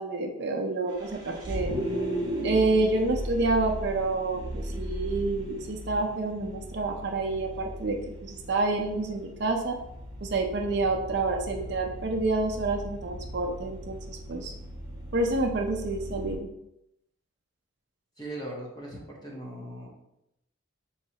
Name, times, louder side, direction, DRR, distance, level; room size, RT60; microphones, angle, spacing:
voice 1, 0.0-1.7 2.4-9.8 10.2-14.5 15.1-16.5, right 2 dB, 50° right, 2 dB, 0.5 m, -28 dB
Vehicle, 0.9-16.4, equal, 20° right, 0.8 m, -37 dB
voice 2, 18.2-19.9, right 1 dB, 20° left, -2 dB, 0.7 m, -39 dB
4.8 x 3.1 x 2.8 m, 0.83 s
head